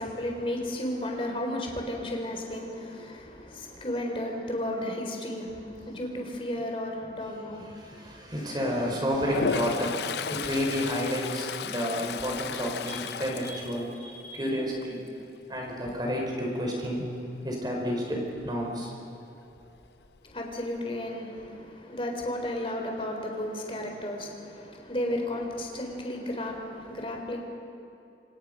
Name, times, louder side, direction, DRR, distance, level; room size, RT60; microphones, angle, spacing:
voice 1, 0.0-8.1 20.2-27.4, left 1 dB, 30° left, 2 dB, 3.8 m, -33 dB
voice 2, 7.0-15.0 15.5-17.0 17.4-18.9, equal, 25° right, -1 dB, 5.1 m, -31 dB
Toilet flush, 9.2-14.4 14.8-15.2 19.7-19.8 20.0-20.8, left 6 dB, 70° left, 0.6 m, -34 dB
28.5 x 25.5 x 5.5 m, 2.9 s
head